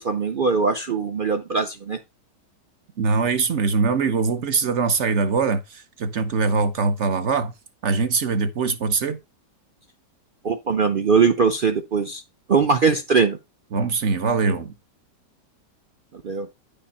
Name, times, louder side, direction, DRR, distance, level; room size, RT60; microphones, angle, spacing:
voice 1, 0.0-2.0 10.4-12.2 12.5-13.4 16.2-16.5, right 5 dB, 75° right, 0.4 m, -21 dB
voice 2, 3.0-7.5 7.8-9.2 13.7-14.7, right 4 dB, 55° right, 0.9 m, -22 dB
9.8 x 5.2 x 4.2 m
omnidirectional pair, 1.9 m